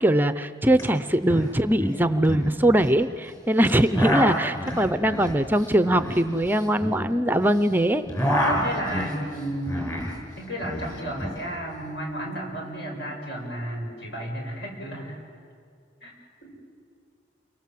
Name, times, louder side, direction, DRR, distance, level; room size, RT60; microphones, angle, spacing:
voice 1, 0.0-8.0, right 1 dB, 10° right, 11 dB, 0.6 m, -21 dB
sound 1, 0.8-0.9 1.1-1.5 1.8-3.0 3.6-7.6 7.9-10.2 10.4-11.4, equal, 20° left, 6.5 m, -28 dB
voice 2, 8.5-9.8 10.4-15.2 16.0-16.1 16.4-16.5, equal, 65° left, 0 dB, 6.9 m, -33 dB
29.0 x 23.5 x 7.7 m, 2.2 s
head